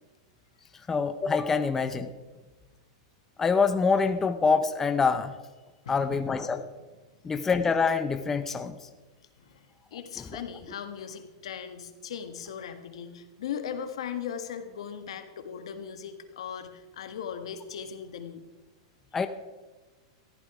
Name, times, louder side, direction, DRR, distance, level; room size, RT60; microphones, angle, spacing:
voice 1, 0.9-2.1 3.4-5.4 5.9-6.6 7.2-8.9 10.3-10.4 19.1-19.3, left 5 dB, 10° left, 8 dB, 0.6 m, -25 dB
voice 2, 5.8-6.6 9.4-18.4 19.1-19.2, left 8 dB, 85° left, 7 dB, 1.6 m, -39 dB
14.5 x 11.5 x 4.9 m, 1.2 s
supercardioid pair, 155°, 3 cm